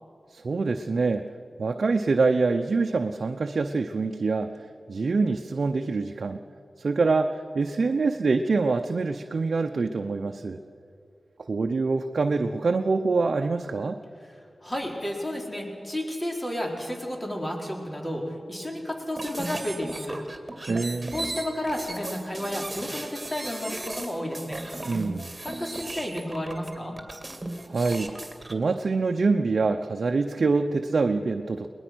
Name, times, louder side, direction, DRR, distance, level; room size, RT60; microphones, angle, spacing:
voice 1, 0.3-1.3 1.6-4.6 4.9-6.4 6.8-10.6 11.5-14.0 20.7-21.1 24.9-25.3 27.7-28.1 28.5-31.7, right 4 dB, 70° right, 4 dB, 0.7 m, -25 dB
voice 2, 14.6-20.2 21.1-24.6 25.4-26.9, left 1 dB, 25° left, 0 dB, 4.5 m, -32 dB
sound 1, 19.1-28.5, right 2 dB, 30° right, 2.4 m, -36 dB
22.0 x 19.5 x 6.2 m, 2.5 s
cardioid pair, 55°, 0 cm